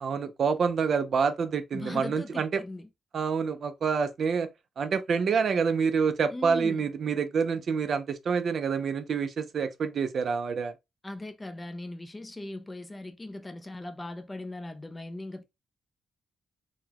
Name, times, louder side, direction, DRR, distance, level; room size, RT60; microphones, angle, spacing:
voice 1, 0.0-2.6 3.1-4.5 4.8-10.7, right 6 dB, 50° right, 0.4 m, -27 dB
voice 2, 1.7-2.9 6.3-6.8 11.0-15.4, left 2 dB, 15° left, 0.4 m, -39 dB
3.9 x 2.1 x 2.8 m
wide cardioid pair, 165°, 0 cm